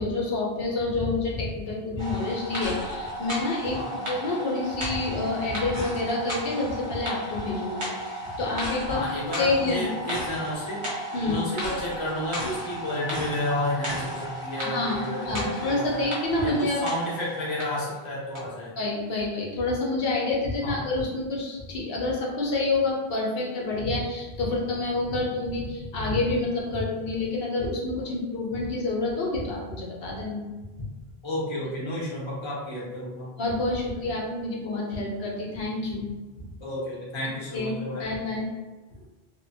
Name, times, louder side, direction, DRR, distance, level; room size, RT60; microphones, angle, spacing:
voice 1, 0.0-7.9 8.2-9.0 9.4-9.9 11.1-11.4 14.5-16.8 18.8-30.4 30.8-30.9 33.4-36.1 37.5-38.5, left 2 dB, 65° left, -2 dB, 0.9 m, -28 dB
sound 1, 2.0-17.9 18.3-18.4, equal, 35° right, 0.6 m, -34 dB
voice 2, 3.7-4.1 8.9-10.8 11.2-16.1 16.4-18.7 20.6-20.8 31.2-33.3 36.6-38.1, left 1 dB, 30° left, -5 dB, 0.7 m, -31 dB
2.8 x 2.1 x 2.6 m, 1.2 s
omnidirectional pair, 1.1 m